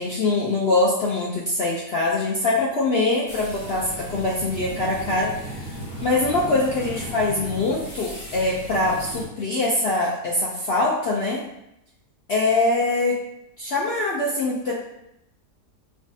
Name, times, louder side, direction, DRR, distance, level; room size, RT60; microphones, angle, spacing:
voice 1, 0.0-5.3 5.6-5.7 6.0-11.4 12.3-13.2 13.6-14.7, left 2 dB, 80° left, -5 dB, 0.5 m, -23 dB
sound 1, 3.3-9.3, equal, 25° left, 1.1 m, -36 dB
4.5 x 2.3 x 2.7 m, 0.81 s
omnidirectional pair, 1.8 m